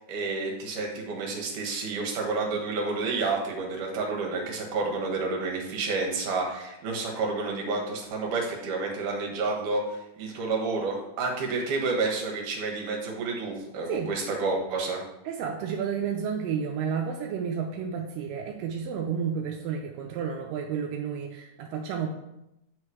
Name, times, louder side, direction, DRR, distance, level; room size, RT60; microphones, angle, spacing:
voice 1, 0.0-15.0, right 3 dB, 70° right, 0 dB, 2.8 m, -30 dB
voice 2, 15.3-22.1, right 7 dB, 85° right, 1 dB, 2.3 m, -31 dB
9.4 x 3.3 x 4.8 m, 0.87 s
omnidirectional pair, 3.9 m